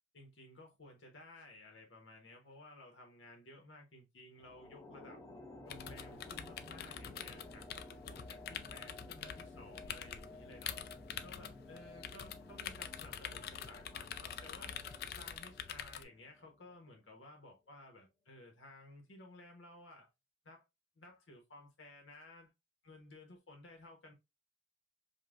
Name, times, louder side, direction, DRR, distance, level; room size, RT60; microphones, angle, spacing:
voice 1, 0.1-5.2 5.6-10.8 11.2-14.7 15.1-20.1 20.4-20.6 21.0-22.5 22.8-24.1, left 2 dB, 75° left, 1.0 m, -56 dB
sound 1, 4.4-16.9, left 2 dB, 15° left, 0.6 m, -54 dB
sound 2, 5.7-16.0, left 9 dB, 50° left, 0.3 m, -46 dB
5.2 x 2.2 x 2.4 m
head